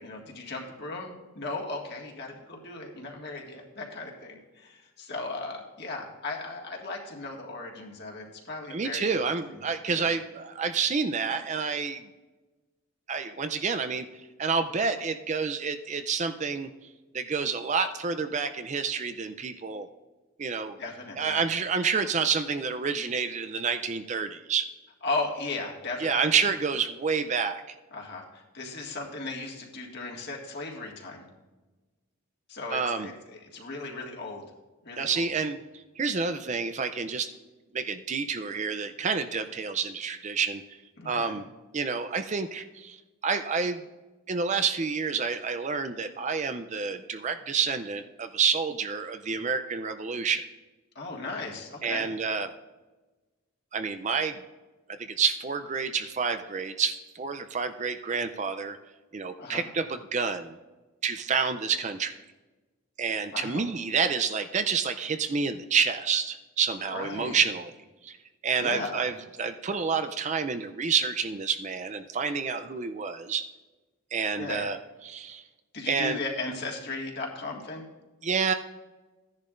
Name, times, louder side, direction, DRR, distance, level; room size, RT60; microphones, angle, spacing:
voice 1, 0.0-9.2 9.5-9.6 9.9-10.1 20.8-21.4 25.0-26.3 27.9-31.2 32.5-34.5 34.8-35.3 41.0-41.4 51.0-52.1 59.4-59.7 63.3-63.7 66.9-67.4 68.6-69.1 74.4-74.6 75.7-77.9, left 3 dB, 50° left, 0 dB, 1.8 m, -36 dB
voice 2, 8.7-12.0 13.1-14.1 14.4-16.7 17.1-19.9 20.4-20.8 21.2-24.7 26.0-27.6 32.7-33.1 35.0-35.6 36.0-37.3 37.7-40.6 41.0-41.4 41.7-43.0 43.2-43.8 44.3-50.4 51.8-52.5 53.7-54.4 55.0-58.8 59.1-60.6 61.0-62.2 63.0-67.7 68.0-68.2 68.4-73.4 74.1-74.8 75.0-75.4 75.9-76.2 78.2-78.5, right 5 dB, 35° right, 9 dB, 0.4 m, -28 dB
15.0 x 10.5 x 2.5 m, 1.2 s
head